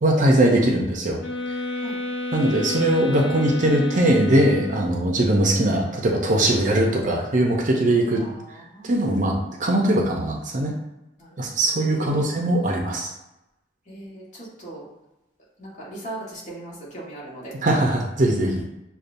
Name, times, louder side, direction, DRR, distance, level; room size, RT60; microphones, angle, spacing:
voice 1, 0.0-1.2 2.3-8.2 8.8-10.8 11.4-13.1 17.6-18.6, right 1 dB, 45° right, 0 dB, 0.7 m, -20 dB
sound 1, 1.2-5.1, left 2 dB, 80° left, 1.0 m, -31 dB
voice 2, 8.1-9.0 11.2-11.4 11.6-13.0 13.9-14.9 15.6-17.5, right 2 dB, 45° left, -6 dB, 1.5 m, -39 dB
6.7 x 2.4 x 2.6 m, 0.93 s
head